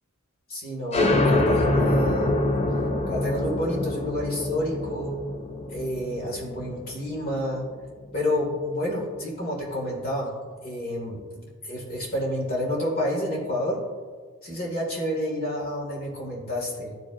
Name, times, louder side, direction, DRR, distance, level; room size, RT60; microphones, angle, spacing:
voice 1, 0.5-2.3 3.1-5.1 5.7-7.6 8.1-10.3 10.6-11.2 11.6-13.8 14.4-16.9, left 1 dB, 45° left, -3 dB, 1.9 m, -29 dB
sound 1, 0.9-8.2, left 2 dB, 30° left, 0.6 m, -25 dB
12.0 x 5.2 x 2.5 m, 1.5 s
head